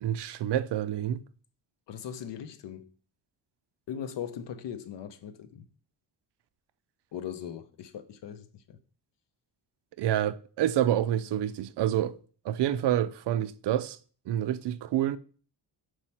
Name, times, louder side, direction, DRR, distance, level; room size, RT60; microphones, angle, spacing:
voice 1, 0.0-1.2 10.0-12.2 12.4-14.0 14.3-15.2, right 11 dB, 70° right, 0.5 m, -28 dB
voice 2, 1.9-2.9 3.9-5.6 7.1-8.8, left 9 dB, 75° left, 0.8 m, -39 dB
4.8 x 4.4 x 5.7 m
wide cardioid pair, 130°, 42 cm